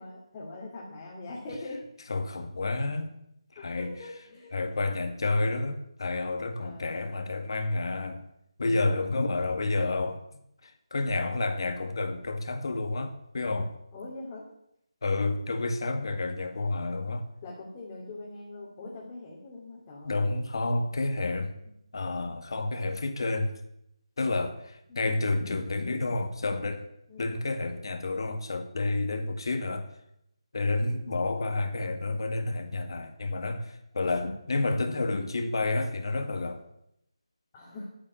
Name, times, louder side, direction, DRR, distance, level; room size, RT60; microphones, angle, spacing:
voice 1, 0.0-1.8 3.6-4.5 6.6-7.0 8.6-8.9 13.9-14.5 17.4-20.4 24.9-25.1 27.1-27.3 30.6-30.9 34.1-34.3 37.5-37.9, left 2 dB, 20° left, 2.6 m, -42 dB
voice 2, 2.1-3.1 3.6-3.9 4.5-8.2 8.6-10.2 10.6-13.7 15.0-17.2 20.1-21.5 21.9-23.5 24.2-26.9 27.2-29.9 30.5-36.6, left 2 dB, 55° left, 2.0 m, -30 dB
11.5 x 9.1 x 9.8 m
figure-of-eight pair, 165°, 3 cm